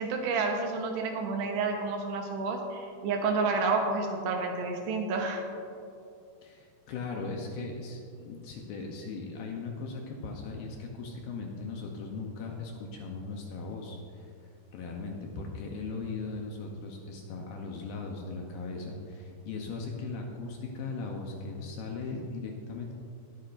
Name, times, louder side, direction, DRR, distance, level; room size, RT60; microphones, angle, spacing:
voice 1, 0.0-5.4, right 4 dB, 85° right, 2 dB, 3.1 m, -30 dB
voice 2, 6.4-14.3 14.7-22.9, left 3 dB, 75° left, 1 dB, 2.3 m, -38 dB
21.0 x 8.6 x 2.6 m, 2.5 s
omnidirectional pair, 4.8 m